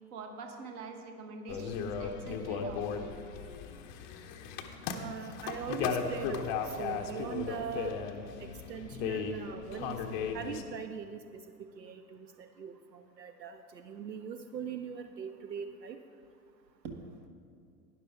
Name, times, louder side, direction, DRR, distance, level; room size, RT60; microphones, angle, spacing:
voice 1, 0.1-2.9 16.8-17.1, right 4 dB, 35° right, 4 dB, 1.1 m, -44 dB
sound 1, 1.5-10.6, left 6 dB, 30° left, 0.6 m, -36 dB
voice 2, 4.9-7.9 8.4-10.0 10.3-11.4 11.8-16.0, right 7 dB, 80° right, 8 dB, 0.6 m, -41 dB
11.5 x 9.8 x 3.5 m, 2.3 s
figure-of-eight pair, 95°, 49 cm